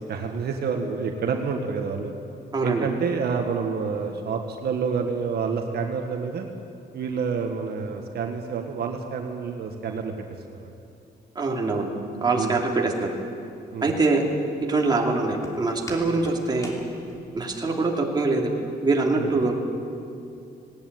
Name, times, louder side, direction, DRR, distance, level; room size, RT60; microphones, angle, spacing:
voice 1, 0.0-2.1 2.6-6.5 6.9-10.1 10.5-10.7 12.3-12.5 13.7-13.9 16.1-16.2 19.2-19.3, right 5 dB, 65° right, 3 dB, 1.7 m, -28 dB
voice 2, 2.5-2.9 11.3-11.9 12.2-13.1 13.8-14.2 14.7-16.7 17.3-18.5 18.8-19.5, right 3 dB, 25° right, 0 dB, 2.7 m, -23 dB
Walk footsteps, 13.0-17.6, left 1 dB, 20° left, 3.0 m, -43 dB
19.0 x 18.0 x 9.4 m, 2.6 s
wide cardioid pair, 155°, 17 cm